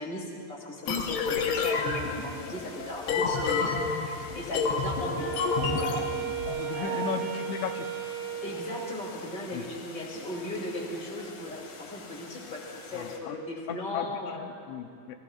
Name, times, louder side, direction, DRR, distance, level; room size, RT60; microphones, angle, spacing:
voice 1, 0.0-5.3 5.6-6.1 6.7-7.1 8.4-14.5, left 1 dB, 25° left, -3 dB, 2.4 m, -38 dB
sound 1, 0.8-13.2, left 4 dB, 55° left, 2.4 m, -47 dB
sound 2, 0.9-6.6, left 4 dB, 75° left, 3.1 m, -29 dB
Wind instrument woodwind instrument, 5.0-9.4, right 8 dB, 80° right, 2.1 m, -35 dB
voice 2, 6.6-7.9 9.5-9.6 12.9-13.4 13.7-15.2, left 8 dB, 90° left, 6 dB, 3.1 m, -36 dB
29.0 x 19.0 x 2.5 m, 2.5 s
omnidirectional pair, 5.0 m